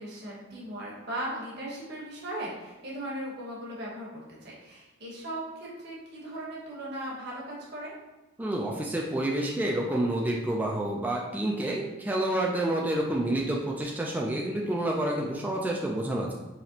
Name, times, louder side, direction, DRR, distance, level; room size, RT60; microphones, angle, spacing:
voice 1, 0.0-7.9, right 1 dB, 55° right, -5 dB, 1.1 m, -38 dB
voice 2, 8.4-16.3, right 1 dB, 10° right, -2 dB, 0.3 m, -29 dB
4.1 x 3.0 x 2.8 m, 1.1 s
head